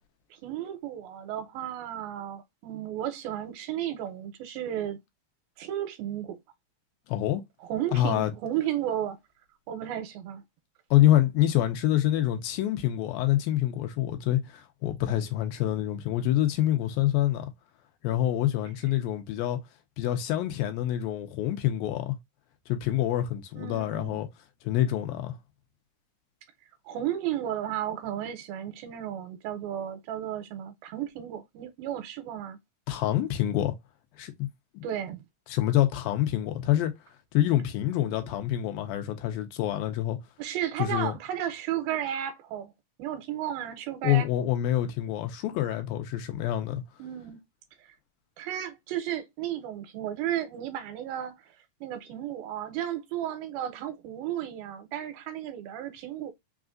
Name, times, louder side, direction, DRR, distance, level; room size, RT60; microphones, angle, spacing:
voice 1, 0.4-5.0 5.6-6.4 7.7-9.2 9.7-10.4 23.6-24.2 26.9-32.6 34.8-35.2 40.4-42.7 43.0-44.3 47.0-47.4 47.8-47.9 48.4-51.6 51.8-56.3, right 11 dB, 85° right, 2.4 m, -33 dB
voice 2, 7.1-7.4 7.9-8.3 10.9-17.5 18.0-19.6 20.0-22.2 22.7-24.3 24.6-25.4 32.9-33.7 34.2-34.5 34.8-34.9 35.5-36.9 37.3-40.2 40.8-41.1 44.0-46.8, left 13 dB, 80° left, 2.4 m, -26 dB
5.7 x 2.4 x 2.4 m
omnidirectional pair, 4.3 m